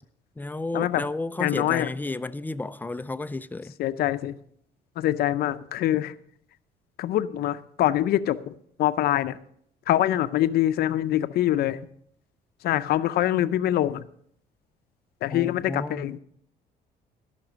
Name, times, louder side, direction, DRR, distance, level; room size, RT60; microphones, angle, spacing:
voice 1, 0.4-3.8 15.3-16.1, left 2 dB, 10° left, 0.4 m, -32 dB
voice 2, 1.4-1.9 3.8-4.4 5.0-6.1 7.0-8.5 8.8-9.4 9.9-11.8 12.6-14.0 15.2-16.2, left 13 dB, 65° left, 0.6 m, -24 dB
13.5 x 6.0 x 6.1 m
cardioid pair, 110°, 17 cm